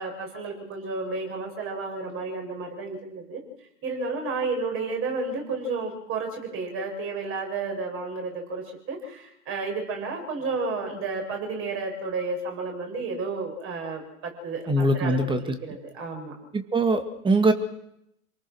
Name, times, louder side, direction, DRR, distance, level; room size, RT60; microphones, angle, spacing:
voice 1, 0.0-3.4 3.8-15.3 15.6-16.3, right 3 dB, 30° right, 2 dB, 7.1 m, -32 dB
voice 2, 14.7-15.6 16.5-17.5, right 2 dB, 10° right, 8 dB, 2.1 m, -22 dB
28.0 x 19.0 x 6.3 m, 0.81 s
hypercardioid pair, 115°, 44 cm